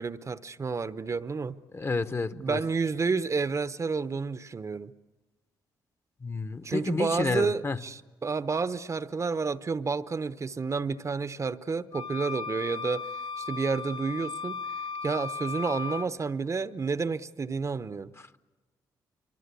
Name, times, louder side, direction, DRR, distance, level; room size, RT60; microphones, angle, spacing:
voice 1, 0.0-1.6 2.3-4.9 6.6-18.1, right 4 dB, 35° right, 0.8 m, -30 dB
voice 2, 1.7-2.6 6.2-7.8, left 3 dB, 30° left, 1.0 m, -30 dB
sound 1, 11.9-16.1, left 5 dB, 60° left, 1.1 m, -36 dB
24.5 x 24.0 x 8.4 m
supercardioid pair, 55°, 8 cm